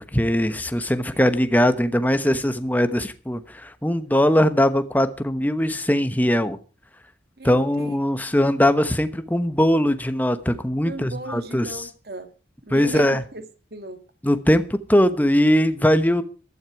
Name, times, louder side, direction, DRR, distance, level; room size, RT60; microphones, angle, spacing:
voice 1, 0.1-6.6 7.4-11.7 12.7-13.2 14.2-16.2, equal, 10° left, 1.0 m, -20 dB
voice 2, 7.4-8.3 10.8-12.3 12.6-13.5 13.7-14.0, right 2 dB, 60° right, 2.0 m, -36 dB
15.0 x 12.5 x 4.7 m
head